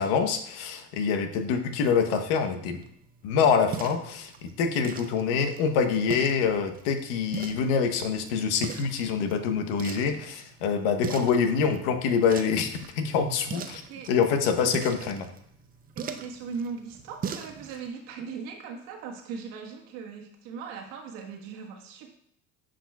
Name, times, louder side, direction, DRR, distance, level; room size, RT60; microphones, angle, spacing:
voice 1, 0.0-2.8 3.2-12.7 12.9-13.8 14.1-15.3, left 6 dB, 85° left, 7 dB, 0.9 m, -25 dB
sound 1, 2.7-17.9, right 7 dB, 30° right, 0.6 m, -42 dB
voice 2, 15.9-22.1, right 5 dB, 80° right, 2 dB, 1.4 m, -39 dB
9.9 x 5.1 x 2.3 m, 0.69 s
supercardioid pair, 110°, 29 cm